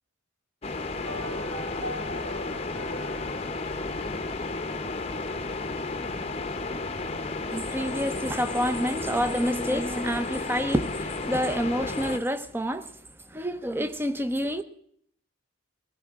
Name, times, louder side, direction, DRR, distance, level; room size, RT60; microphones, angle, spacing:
sound 1, 0.6-12.2, left 3 dB, 30° left, 0.8 m, -33 dB
sound 2, 1.0-5.3 5.6-5.7, right 1 dB, 85° right, 1.7 m, -41 dB
voice 1, 7.5-12.9 13.3-14.6, equal, 10° right, 0.7 m, -28 dB
21.0 x 15.5 x 3.6 m
head